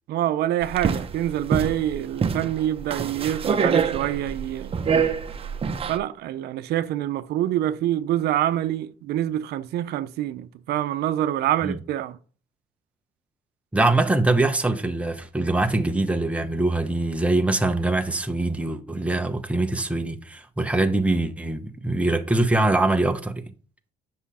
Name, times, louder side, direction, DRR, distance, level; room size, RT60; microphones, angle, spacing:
voice 1, 0.1-4.8 5.9-12.2, right 12 dB, 75° right, 0.7 m, -26 dB
sound 1, 0.6-6.0, right 6 dB, 35° right, 1.0 m, -25 dB
voice 2, 13.7-23.4, right 2 dB, 5° right, 1.1 m, -23 dB
9.7 x 6.3 x 4.3 m
cardioid pair, 110°, 17 cm